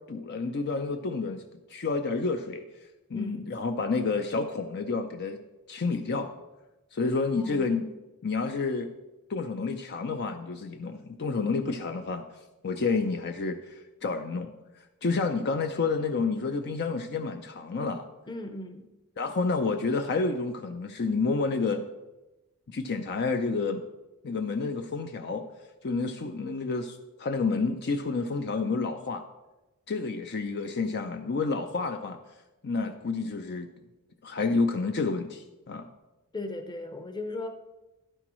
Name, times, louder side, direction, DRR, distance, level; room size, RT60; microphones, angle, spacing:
voice 1, 0.1-1.4 1.7-2.6 3.1-5.4 5.7-6.3 6.9-7.8 8.2-8.9 9.3-12.2 12.6-14.5 15.0-18.1 19.2-21.8 22.7-23.8 24.2-25.5 25.8-29.2 29.9-32.2 32.6-33.7 34.2-35.9, left 4 dB, 50° left, 6 dB, 0.5 m, -29 dB
voice 2, 3.1-3.5 7.3-7.9 18.3-18.9 36.3-37.5, left 2 dB, 20° left, 6 dB, 0.8 m, -37 dB
11.5 x 9.9 x 3.1 m, 1.0 s
head